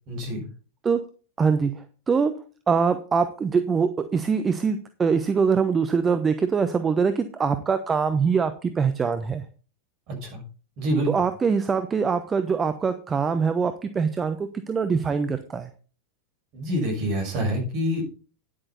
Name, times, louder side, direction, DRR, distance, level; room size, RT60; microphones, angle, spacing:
voice 1, 0.1-0.4 10.1-10.4 10.8-11.1 16.5-18.2, equal, 40° right, 2 dB, 6.0 m, -26 dB
voice 2, 1.4-1.7 2.1-2.3 2.7-9.4 11.1-15.7, right 5 dB, 20° right, 9 dB, 0.9 m, -23 dB
10.0 x 8.6 x 4.1 m, 0.37 s
figure-of-eight pair, 90°, 0 cm